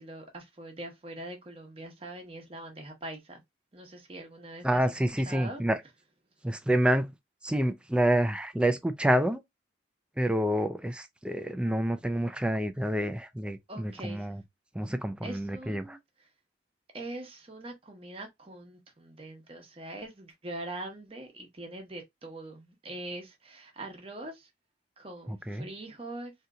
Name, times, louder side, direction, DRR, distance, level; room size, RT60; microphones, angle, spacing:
voice 1, 0.0-3.4 3.7-5.0 5.3-5.6 13.7-14.3 15.2-16.0 16.9-24.5 25.0-26.3, right 1 dB, 30° right, 0.9 m, -42 dB
voice 2, 4.6-5.8 6.4-7.1 7.4-9.4 10.2-14.4 14.7-16.0 25.3-25.7, right 1 dB, 5° right, 0.3 m, -28 dB
3.8 x 2.8 x 2.3 m
head